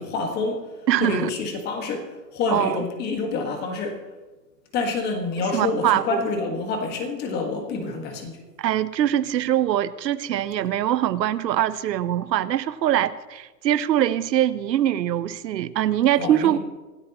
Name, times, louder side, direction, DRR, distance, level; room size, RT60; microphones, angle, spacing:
voice 1, 0.0-0.7 1.0-4.0 4.7-8.4 16.2-16.6, left 4 dB, 20° left, 1.6 m, -27 dB
voice 2, 0.9-1.3 2.5-2.8 5.5-6.2 8.6-16.6, right 11 dB, 80° right, 0.8 m, -23 dB
25.0 x 13.0 x 3.0 m
hypercardioid pair, 155°, 49 cm